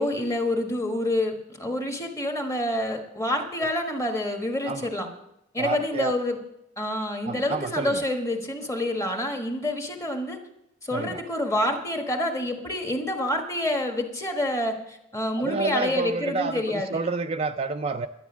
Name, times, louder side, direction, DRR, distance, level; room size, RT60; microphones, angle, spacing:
voice 1, 0.0-5.1 5.5-6.4 6.8-10.4 10.8-17.0, left 1 dB, 15° left, 4 dB, 1.3 m, -27 dB
voice 2, 5.6-6.2 7.3-8.0 10.9-11.2 15.4-16.6 16.9-18.1, right 4 dB, 30° right, 6 dB, 0.4 m, -29 dB
11.5 x 9.3 x 6.0 m, 0.83 s
head